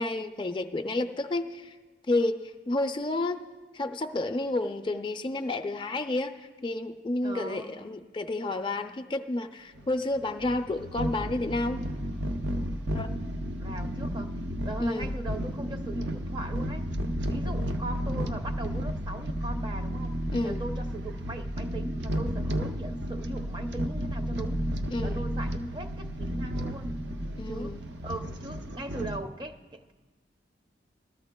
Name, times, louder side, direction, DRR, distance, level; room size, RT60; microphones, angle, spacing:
voice 1, 0.0-1.8 2.1-3.4 3.7-11.8 12.9-13.1 14.8-15.2 20.3-20.6 24.9-25.3 27.4-27.9, left 2 dB, 25° left, 7 dB, 0.4 m, -30 dB
voice 2, 7.2-7.7 13.6-14.3 14.6-16.9 17.2-20.2 20.4-24.7 25.0-27.0 27.5-29.9, right 1 dB, 25° right, 6 dB, 0.5 m, -39 dB
sound 1, 9.8-29.2, equal, 80° right, 0.6 m, -32 dB
19.0 x 13.5 x 2.2 m, 1.4 s
head